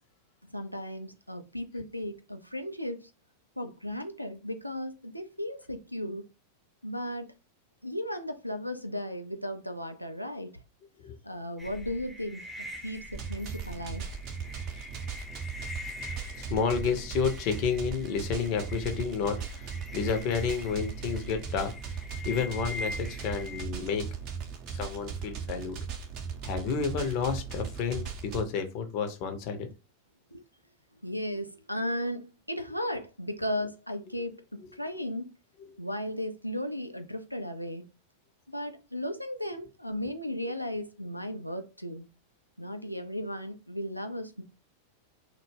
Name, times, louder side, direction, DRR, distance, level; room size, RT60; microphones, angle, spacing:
voice 1, 0.5-3.1 3.6-6.2 6.8-7.3 7.8-10.6 11.2-12.5 12.8-14.0 30.3-30.4 31.0-35.3 35.8-37.8 38.5-42.1 42.6-44.4, left 1 dB, 90° left, 0.3 m, -35 dB
sound 1, 11.6-23.6, left 2 dB, ahead, 0.6 m, -43 dB
sound 2, 13.1-28.4, right 6 dB, 40° right, 0.6 m, -38 dB
voice 2, 16.4-24.0 24.7-25.8 26.4-29.7, left 6 dB, 45° left, 0.6 m, -31 dB
2.1 x 2.0 x 3.2 m
figure-of-eight pair, 90°, 0 cm